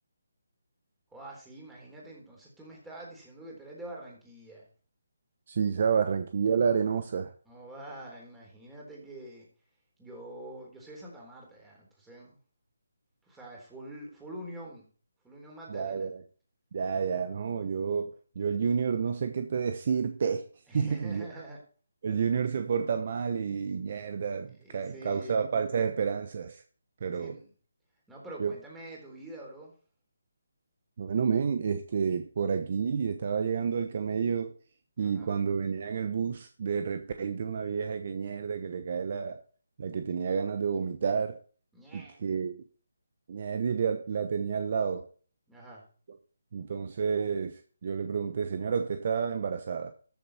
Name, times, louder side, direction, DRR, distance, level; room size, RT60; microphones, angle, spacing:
voice 1, 1.1-4.7 7.5-9.5 10.0-12.4 13.3-14.9 15.2-16.1 20.7-21.6 24.5-25.4 27.1-27.5 28.1-29.7 35.0-35.4 41.7-42.2 45.5-45.8, right 1 dB, 5° right, 3.9 m, -46 dB
voice 2, 5.5-7.3 15.7-16.2 16.7-20.5 20.7-21.3 22.0-26.6 27.0-27.4 28.4-28.5 31.0-34.5 35.0-39.4 39.8-41.4 41.9-42.6 43.3-45.1 46.5-49.9, right 6 dB, 45° right, 0.9 m, -30 dB
13.5 x 7.2 x 4.3 m
figure-of-eight pair, 160°, 0 cm